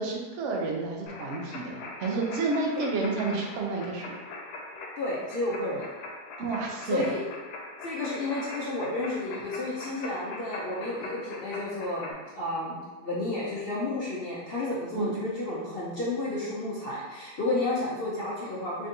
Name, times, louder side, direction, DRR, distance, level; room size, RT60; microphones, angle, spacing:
voice 1, 0.0-4.1 6.4-7.1 14.9-15.1, right 3 dB, 60° right, -1 dB, 0.9 m, -30 dB
sound 1, 1.1-12.1, left 2 dB, 90° left, 1.2 m, -41 dB
voice 2, 5.0-5.9 6.9-7.2 7.8-18.9, left 2 dB, 55° left, -6 dB, 0.7 m, -31 dB
3.8 x 3.4 x 2.7 m, 1.3 s
omnidirectional pair, 1.7 m